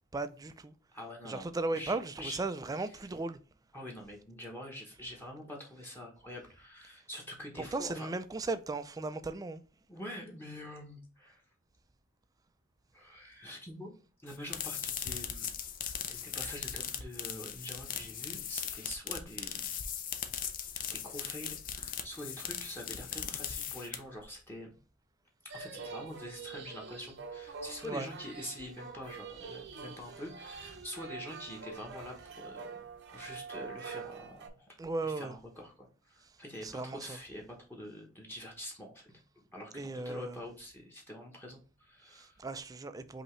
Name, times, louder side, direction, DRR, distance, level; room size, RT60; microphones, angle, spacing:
voice 1, 0.1-0.7 1.2-3.4 7.6-9.6 27.8-28.1 34.8-35.4 36.6-37.2 39.7-40.4 42.1-43.2, right 3 dB, 15° right, 0.3 m, -36 dB
voice 2, 0.9-1.4 1.7-2.4 3.7-8.1 9.9-11.4 12.9-13.9 14.2-15.5 16.0-19.6 20.9-24.8 25.4-32.6 33.1-34.8 35.0-42.4, left 1 dB, 10° left, 1.0 m, -45 dB
sound 1, 14.3-24.2, left 8 dB, 40° left, 0.5 m, -39 dB
sound 2, 25.5-34.5, right 5 dB, 55° right, 0.7 m, -45 dB
5.3 x 2.9 x 3.1 m
head